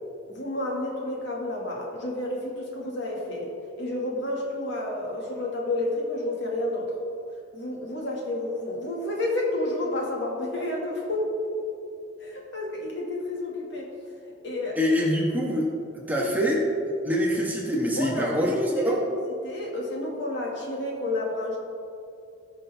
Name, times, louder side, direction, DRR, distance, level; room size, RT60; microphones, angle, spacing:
voice 1, 0.3-6.9 7.5-11.7 12.2-13.9 14.4-15.0 16.2-16.4 18.0-18.9 19.4-21.6, left 1 dB, 60° left, -2 dB, 2.0 m, -30 dB
voice 2, 14.8-15.7 16.1-16.6 17.0-19.0, equal, 10° right, -3 dB, 1.3 m, -24 dB
18.0 x 6.0 x 3.5 m, 2.5 s
head